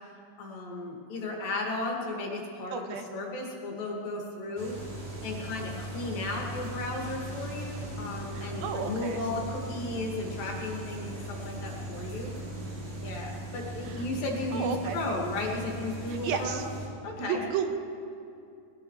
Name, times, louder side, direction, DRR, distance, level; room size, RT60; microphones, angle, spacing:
voice 1, 0.4-2.8 3.1-4.8 5.2-12.3 13.0-16.7 17.0-17.4, left 2 dB, 70° left, -1 dB, 3.8 m, -34 dB
voice 2, 2.7-3.1 8.3-9.2 13.8-14.1 14.5-15.0 16.1-16.6 17.2-17.7, right 7 dB, 90° right, 5 dB, 2.9 m, -33 dB
sound 1, 4.6-16.9, right 1 dB, 55° right, 4.2 m, -38 dB
21.5 x 17.0 x 3.2 m, 2.5 s
omnidirectional pair, 4.2 m